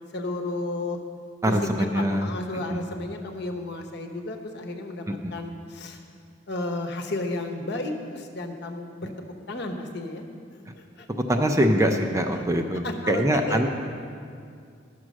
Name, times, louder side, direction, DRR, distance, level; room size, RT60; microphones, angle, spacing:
voice 1, 0.1-1.0 1.4-1.6 1.9-5.0 5.3-6.0 6.5-9.1 9.5-10.2 10.5-10.6 11.0-11.1 12.8-13.7, left 2 dB, 55° left, 3 dB, 1.0 m, -32 dB
voice 2, 1.4-2.3 2.7-2.8 5.1-5.3 9.0-9.1 11.1-13.7, equal, 15° right, 4 dB, 0.5 m, -24 dB
12.0 x 6.1 x 6.3 m, 2.3 s
head